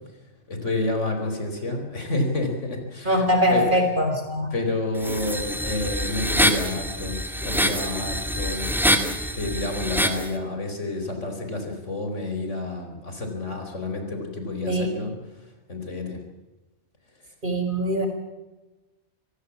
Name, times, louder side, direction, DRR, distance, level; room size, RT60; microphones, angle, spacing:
voice 1, 0.5-3.6 4.5-8.7 9.3-15.1 15.7-16.2, left 2 dB, 75° left, 4 dB, 4.9 m, -29 dB
voice 2, 3.0-4.5 14.7-14.9 17.4-18.1, equal, 40° right, 4 dB, 5.0 m, -22 dB
sound 1, 5.0-10.3, equal, ahead, 2.1 m, -25 dB
26.0 x 17.0 x 7.3 m, 1.1 s
omnidirectional pair, 1.3 m